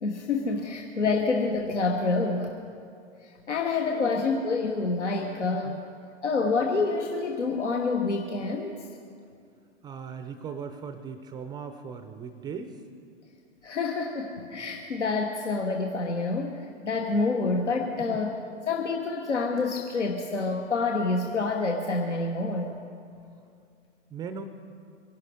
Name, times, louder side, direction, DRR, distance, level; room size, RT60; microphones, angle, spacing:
voice 1, 0.0-2.5 3.2-5.8 6.2-8.8 13.6-18.4 18.7-22.8, left 3 dB, 75° left, 2 dB, 1.3 m, -27 dB
voice 2, 3.7-4.2 5.4-5.8 9.8-12.8 18.0-18.2 24.1-24.4, right 6 dB, 10° right, 9 dB, 0.5 m, -39 dB
24.0 x 11.5 x 4.9 m, 2.4 s
figure-of-eight pair, 105°, 35 cm